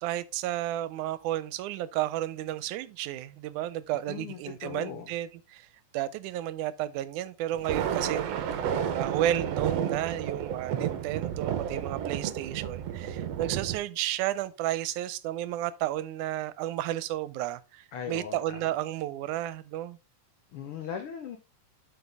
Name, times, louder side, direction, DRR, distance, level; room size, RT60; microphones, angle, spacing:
voice 1, 0.0-5.7 5.9-20.0, right 13 dB, 85° right, 2.0 m, -32 dB
voice 2, 4.1-5.1 17.9-18.7 20.5-21.4, left 8 dB, 85° left, 1.2 m, -38 dB
Thunder, 7.5-13.8, right 9 dB, 70° right, 1.7 m, -31 dB
8.0 x 5.4 x 3.4 m
omnidirectional pair, 3.5 m